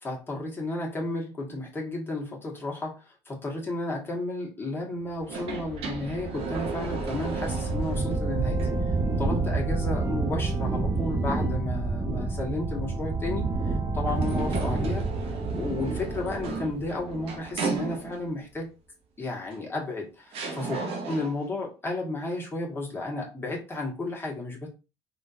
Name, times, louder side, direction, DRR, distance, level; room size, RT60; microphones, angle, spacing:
voice 1, 0.0-8.6 8.9-15.1 15.5-18.7 19.2-20.1 20.6-20.8 21.1-24.7, left 2 dB, 20° left, 1.5 m, -33 dB
sound 1, 5.2-8.2 8.6-8.7 14.1-18.4 19.5-19.6 20.3-21.5, right 4 dB, 70° right, 1.1 m, -35 dB
sound 2, 5.5-17.5, right 3 dB, 30° right, 1.2 m, -29 dB
3.6 x 2.6 x 2.7 m
cardioid pair, 90°, 10 cm